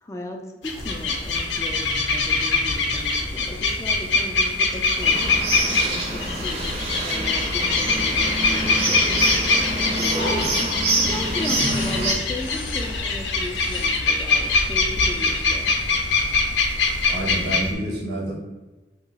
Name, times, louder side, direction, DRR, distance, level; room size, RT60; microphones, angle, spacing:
voice 1, 0.0-9.2 9.5-15.7, left 1 dB, 15° left, 3 dB, 0.3 m, -36 dB
sound 1, 0.6-17.7, left 3 dB, 90° left, 0.5 m, -23 dB
sound 2, 0.7-17.5, left 1 dB, 45° left, 0.6 m, -37 dB
sound 3, 5.0-12.1, right 2 dB, 35° right, 0.6 m, -26 dB
voice 2, 17.1-18.3, right 1 dB, 65° right, -3 dB, 0.8 m, -28 dB
2.9 x 2.3 x 3.9 m, 1.2 s
head